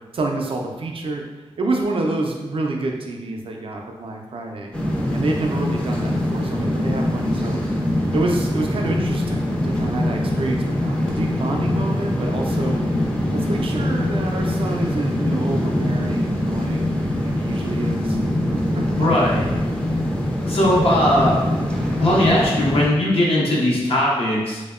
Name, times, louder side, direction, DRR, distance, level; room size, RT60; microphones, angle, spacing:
voice 1, 0.1-1.2 1.6-4.8 5.1-7.6 8.1-12.8 13.3-18.2 18.5-18.9, right 2 dB, 60° right, 1 dB, 0.4 m, -28 dB
sound 1, 4.7-22.9, left 1 dB, 10° left, 0.4 m, -23 dB
voice 2, 18.9-19.5 20.4-21.4 22.0-24.6, left 1 dB, 65° left, -5 dB, 0.6 m, -19 dB
2.7 x 2.0 x 2.3 m, 1.2 s
wide cardioid pair, 75°, 11 cm